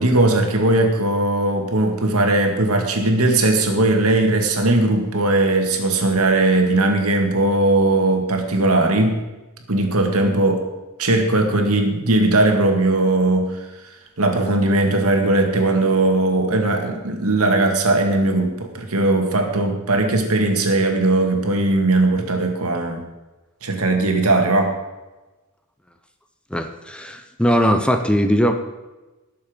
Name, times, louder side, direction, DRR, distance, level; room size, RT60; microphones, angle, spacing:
voice 1, 0.0-9.2 9.7-10.7 11.0-13.6 14.2-23.0 23.6-24.8, right 2 dB, 70° right, 3 dB, 2.1 m, -18 dB
voice 2, 26.5-28.5, equal, 5° left, 7 dB, 0.8 m, -19 dB
18.5 x 7.1 x 5.2 m, 1.1 s
head